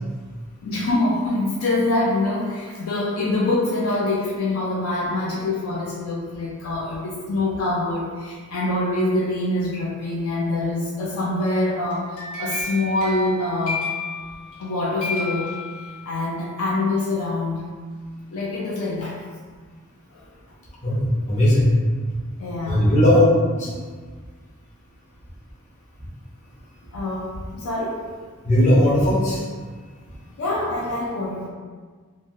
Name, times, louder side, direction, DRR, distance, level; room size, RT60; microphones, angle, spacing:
voice 1, 0.6-13.8 14.6-15.5 16.1-17.6 18.3-19.2 20.1-20.3 22.4-22.9 26.9-28.0 30.4-31.5, left 2 dB, 70° left, -4 dB, 0.4 m, -25 dB
sound 1, 11.9-14.7 15.0-16.3, left 3 dB, 85° left, 1.2 m, -32 dB
voice 2, 20.8-21.7 22.7-23.2 23.5-23.7 28.4-29.4, left 1 dB, 35° left, -7 dB, 0.7 m, -17 dB
3.0 x 2.3 x 2.6 m, 1.5 s
head